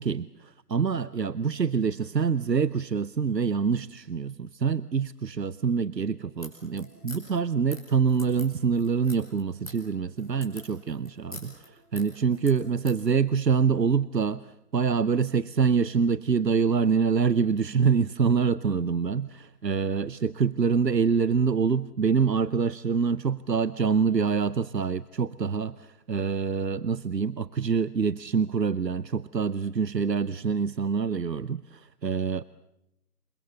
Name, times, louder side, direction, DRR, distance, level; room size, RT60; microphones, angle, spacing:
voice 1, 0.0-32.4, right 6 dB, 85° right, 18 dB, 0.9 m, -26 dB
sound 1, 6.3-13.0, left 1 dB, 20° left, 5.3 m, -46 dB
28.5 x 24.0 x 7.0 m, 0.86 s
figure-of-eight pair, 180°, 48 cm